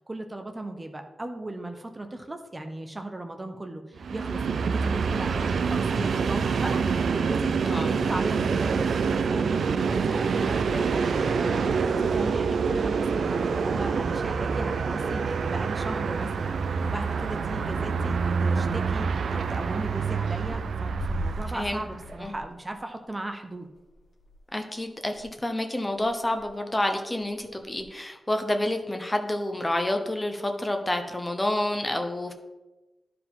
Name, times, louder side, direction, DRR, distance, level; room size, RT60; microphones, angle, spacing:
voice 1, 0.0-11.1 11.3-23.7, right 2 dB, 20° right, 5 dB, 0.7 m, -37 dB
Train, 4.0-22.1, right 5 dB, 80° right, 0.4 m, -26 dB
sound 1, 17.0-17.3 17.6-17.9 18.2-18.3 18.5-18.6 19.3-19.9 20.2-25.3 25.6-25.7 26.0-26.5 27.1-27.8, left 1 dB, 60° left, 2.0 m, -40 dB
voice 2, 21.5-21.8 22.2-22.3 24.5-32.3, left 1 dB, 15° left, 5 dB, 0.8 m, -29 dB
11.5 x 4.8 x 3.7 m, 1.1 s
wide cardioid pair, 105°, 0 cm